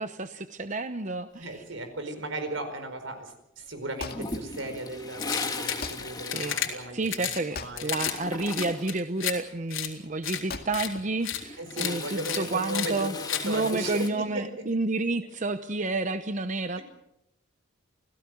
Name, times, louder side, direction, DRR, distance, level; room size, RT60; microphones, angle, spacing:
voice 1, 0.0-1.6 6.3-6.6 6.9-13.1 13.4-16.8, right 2 dB, 40° right, 10 dB, 0.8 m, -30 dB
voice 2, 1.4-7.9 11.6-14.5 16.8-16.9, right 1 dB, 75° right, 8 dB, 4.9 m, -36 dB
Wood, 3.6-11.9, left 4 dB, 50° left, 2.2 m, -44 dB
Toilet flush, 4.1-7.6 7.8-9.0 11.0-14.1, left 3 dB, 20° left, 2.1 m, -38 dB
sound 1, 5.2-5.8 6.2-6.7 7.1-7.4 7.8-8.2 8.4-9.3 9.7-9.9 10.2-10.4 10.7-10.9 11.2-11.4 11.7-11.9 12.2-12.4 12.7-12.9 13.3-13.4, left 11 dB, 85° left, 3.9 m, -31 dB
28.0 x 17.0 x 7.8 m, 0.85 s
head